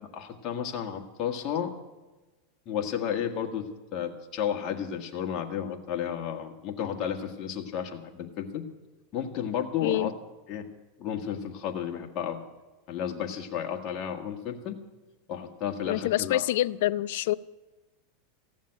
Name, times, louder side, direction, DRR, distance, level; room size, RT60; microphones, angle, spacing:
voice 1, 0.1-1.7 2.6-3.7 3.9-8.6 9.1-10.1 10.5-10.7 11.0-12.4 12.9-14.8 15.3-16.4, left 8 dB, 40° left, 1 dB, 1.7 m, -32 dB
voice 2, 15.9-17.3, left 15 dB, 70° left, 16 dB, 0.4 m, -26 dB
15.5 x 7.2 x 10.0 m, 1.2 s
supercardioid pair, 130°, 0 cm